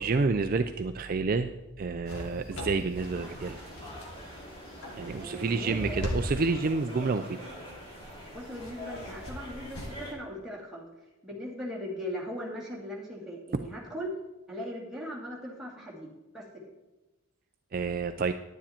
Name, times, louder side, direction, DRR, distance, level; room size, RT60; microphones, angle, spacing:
voice 1, 0.0-1.5 1.8-3.6 5.0-7.4 17.7-18.3, right 4 dB, 40° right, 8 dB, 0.4 m, -29 dB
sound 1, 2.1-10.1, equal, 70° left, 2.0 m, -40 dB
sound 2, 3.0-10.1, equal, 25° left, 3.0 m, -45 dB
voice 2, 5.2-6.1 8.3-10.9 11.2-14.1 14.5-16.5, equal, ahead, -5 dB, 2.4 m, -39 dB
10.0 x 9.9 x 4.4 m, 1.1 s
head